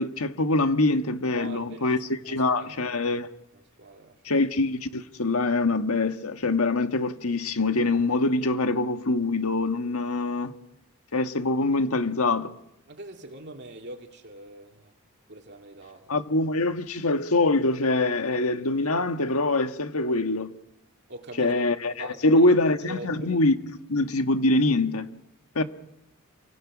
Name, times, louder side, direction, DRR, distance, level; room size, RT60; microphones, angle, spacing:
voice 1, 0.0-3.3 4.2-10.5 11.1-12.5 16.1-20.5 21.4-23.5 23.9-25.1 25.5-25.6, left 2 dB, 80° left, 1.6 m, -24 dB
voice 2, 1.3-3.0 3.5-4.2 12.9-15.0 15.3-16.2 21.1-21.6 22.0-22.5 22.8-23.3, right 2 dB, 55° right, 2.4 m, -43 dB
28.5 x 25.5 x 6.2 m
head